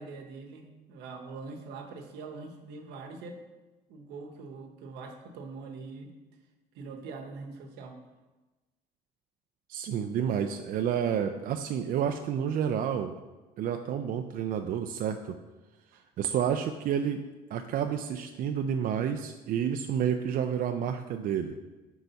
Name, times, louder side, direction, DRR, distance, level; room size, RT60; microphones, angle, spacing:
voice 1, 0.0-3.4 3.9-6.1 6.7-8.0 15.9-16.0, right 4 dB, 80° right, 4 dB, 0.9 m, -43 dB
voice 2, 9.7-13.1 13.6-15.4 16.2-17.3 17.5-21.6, right 8 dB, 55° right, 6 dB, 0.4 m, -30 dB
4.6 x 4.0 x 5.6 m, 1.1 s
cardioid pair, 110°, 17 cm